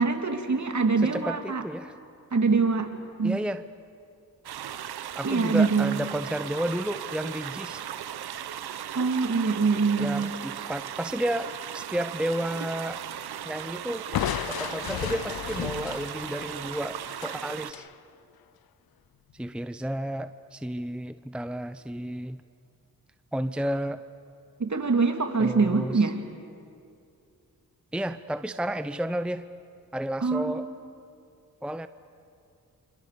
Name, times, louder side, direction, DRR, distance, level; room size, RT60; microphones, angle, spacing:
voice 1, 0.0-1.6 2.3-2.9 3.2-3.4 5.2-6.0 8.9-10.3 24.6-26.2 30.2-30.6, right 4 dB, 50° right, 5 dB, 2.9 m, -24 dB
voice 2, 1.0-1.9 3.2-3.6 5.1-7.8 10.0-13.0 13.4-14.0 14.5-17.9 19.3-22.4 23.3-24.0 25.4-26.1 27.9-29.4 29.9-30.7 31.6-31.9, right 1 dB, 5° right, 12 dB, 0.7 m, -32 dB
sound 1, 4.4-17.7, right 10 dB, 90° right, 0.9 m, -37 dB
Crushing, 14.1-17.9, left 12 dB, 75° left, 0.6 m, -34 dB
29.0 x 26.5 x 6.9 m, 2.5 s
cardioid pair, 55°, 37 cm